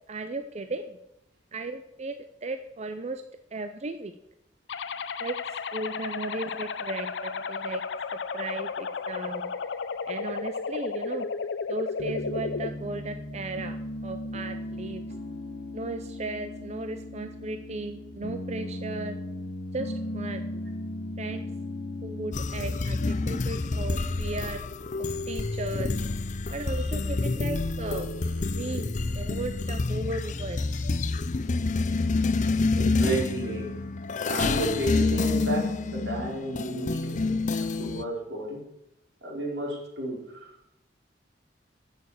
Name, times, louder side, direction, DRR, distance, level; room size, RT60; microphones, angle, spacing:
voice 1, 0.1-1.0 1.5-2.1 2.4-3.2 3.5-4.1 5.2-5.3 5.7-7.8 8.3-9.5 10.1-11.3 11.7-13.8 14.0-15.0 15.7-19.2 19.7-20.5 21.2-21.4 22.0-24.6 25.1-25.9 26.5-28.1 28.5-30.6 35.0-35.1, right 2 dB, 40° right, 8 dB, 0.6 m, -36 dB
sound 1, 4.7-12.7, left 5 dB, 85° left, 0.6 m, -33 dB
Piano, 12.0-24.5, left 1 dB, 65° left, 1.4 m, -37 dB
sound 2, 22.3-38.0, left 3 dB, 45° left, 0.6 m, -28 dB
voice 2, 32.8-33.8 34.3-38.6 39.2-40.5, right 1 dB, 85° right, -3 dB, 4.5 m, -32 dB
10.5 x 7.0 x 7.2 m, 0.82 s
head